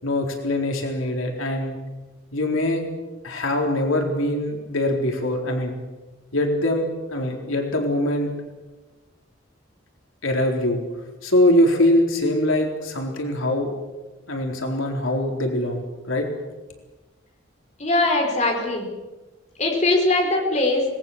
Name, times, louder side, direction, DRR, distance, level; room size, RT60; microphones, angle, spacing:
voice 1, 0.0-1.8 2.3-2.8 3.2-5.8 6.3-8.3 10.2-10.8 11.2-13.8 14.3-16.3, left 1 dB, 85° left, 2 dB, 4.1 m, -23 dB
voice 2, 17.8-18.9 19.6-20.8, left 2 dB, 35° left, 1 dB, 4.8 m, -21 dB
25.5 x 19.5 x 7.4 m, 1.1 s
head